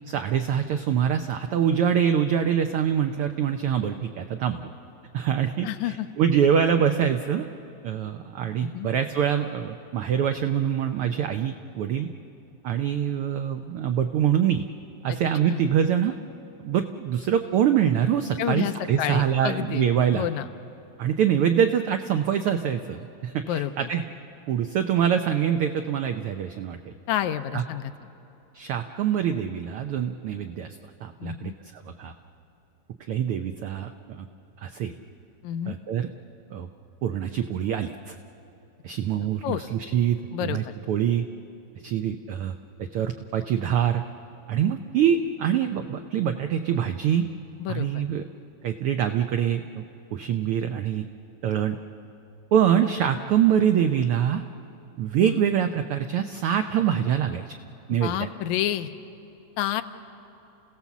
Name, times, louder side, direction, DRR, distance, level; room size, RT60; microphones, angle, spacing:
voice 1, 0.1-4.7 5.1-7.5 7.8-12.1 12.6-14.6 15.0-16.2 16.6-20.3 21.0-24.0 24.5-26.9 27.5-27.6 28.5-30.7 31.0-32.1 33.1-34.3 34.6-34.9 35.7-36.1 36.5-36.7 37.0-38.2 38.8-41.3 41.8-42.5 42.9-44.0 44.5-47.2 47.7-48.2 48.6-49.8 50.1-51.1 51.4-51.8 52.5-54.4 55.0-57.6 57.9-58.3, right 9 dB, 85° right, 7 dB, 1.2 m, -24 dB
voice 2, 5.6-6.1 8.6-8.9 15.1-15.2 15.5-15.6 18.4-19.9 20.1-20.5 23.5-23.9 27.1-27.9 31.2-31.5 35.4-35.8 39.4-39.6 40.3-40.8 47.6-48.0 55.3-55.5 57.9-58.9 59.6-59.8, left 11 dB, 85° left, 10 dB, 2.1 m, -29 dB
29.5 x 16.5 x 7.2 m, 2.9 s
omnidirectional pair, 3.3 m